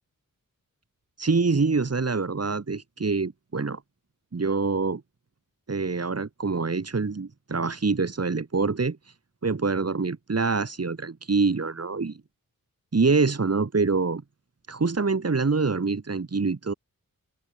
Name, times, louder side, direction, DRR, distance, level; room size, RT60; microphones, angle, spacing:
voice 1, 1.2-3.8 4.3-5.0 5.7-9.0 9.4-12.2 12.9-14.2 14.7-16.7, right 4 dB, 45° right, 5.1 m, -25 dB
wide cardioid pair, 75°, 35 cm